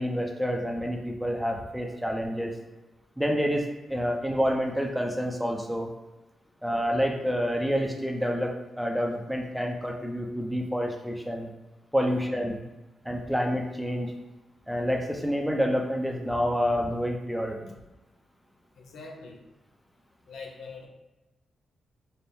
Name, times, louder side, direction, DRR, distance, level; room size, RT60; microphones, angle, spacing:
voice 1, 0.0-2.5 3.2-5.9 6.6-11.5 11.9-12.6 13.0-14.1 14.7-17.7, equal, ahead, 1 dB, 0.5 m, -28 dB
voice 2, 18.8-19.4 20.3-20.9, left 4 dB, 85° left, 0 dB, 0.7 m, -43 dB
4.1 x 2.1 x 3.5 m, 1.0 s
cardioid pair, 85°, 0 cm